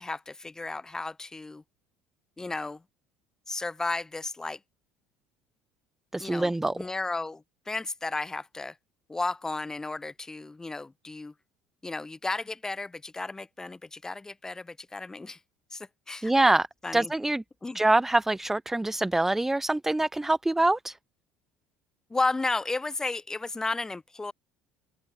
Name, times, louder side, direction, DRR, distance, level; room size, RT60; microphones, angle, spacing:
voice 1, 0.0-1.6 2.4-2.8 3.5-4.6 6.2-8.7 9.1-11.3 11.8-15.4 15.7-16.3 16.8-17.1 17.6-17.8 22.1-24.3, left 3 dB, 15° left, 3.4 m, -33 dB
voice 2, 6.1-6.7 16.2-16.7 16.9-17.4 17.7-20.9, right 2 dB, 10° right, 0.8 m, -24 dB
open air
supercardioid pair, 90°, 4 cm